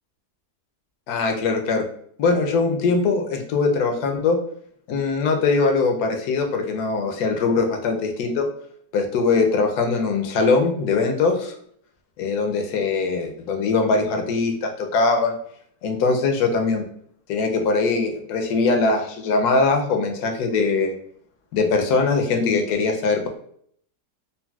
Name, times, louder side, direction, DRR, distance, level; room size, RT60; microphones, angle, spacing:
voice 1, 1.1-1.8 2.2-4.4 4.9-8.5 8.9-11.5 12.2-15.4 15.8-16.8 17.3-20.9 21.5-23.4, left 4 dB, 80° left, 4 dB, 1.1 m, -21 dB
3.9 x 2.1 x 2.3 m, 0.64 s
omnidirectional pair, 1.7 m